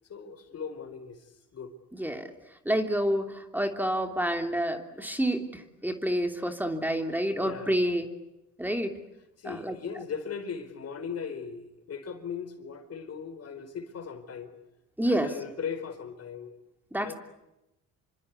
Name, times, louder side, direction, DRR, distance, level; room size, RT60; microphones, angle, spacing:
voice 1, 0.1-1.7 7.4-7.8 9.4-14.5 15.0-16.5 17.0-17.1, left 6 dB, 55° left, 8 dB, 4.4 m, -38 dB
voice 2, 1.9-2.3 2.6-8.1 8.6-9.0 9.4-9.7 15.0-15.3 16.9-17.1, right 1 dB, 5° right, 6 dB, 3.1 m, -28 dB
27.5 x 25.5 x 8.3 m, 0.90 s
cardioid pair, 90°, 30 cm